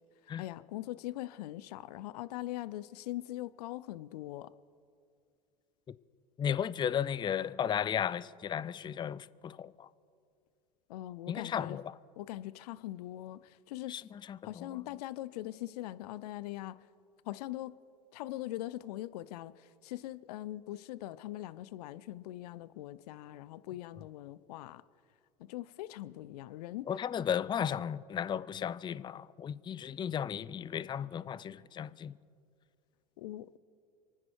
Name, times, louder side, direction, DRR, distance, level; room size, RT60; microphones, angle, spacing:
voice 1, 0.4-4.5 10.9-11.8 12.2-14.0 14.4-16.8 17.2-17.7 18.1-24.8 25.4-26.9 33.2-33.6, left 15 dB, 75° left, 0.5 m, -41 dB
voice 2, 6.4-9.9 11.3-12.0 13.9-14.8 26.9-32.2, left 8 dB, 25° left, 0.4 m, -35 dB
28.5 x 9.8 x 4.7 m
hypercardioid pair, 90°, 20 cm